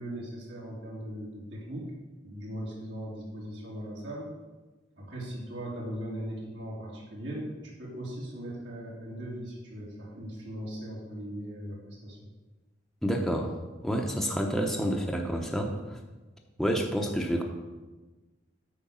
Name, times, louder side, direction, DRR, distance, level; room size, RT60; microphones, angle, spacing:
voice 1, 0.0-1.9 2.2-4.3 5.0-12.3, equal, 75° right, -5 dB, 3.1 m, -39 dB
voice 2, 13.0-13.5 13.8-16.0 16.6-17.4, equal, ahead, 1 dB, 0.8 m, -29 dB
8.7 x 5.2 x 7.1 m, 1.2 s
head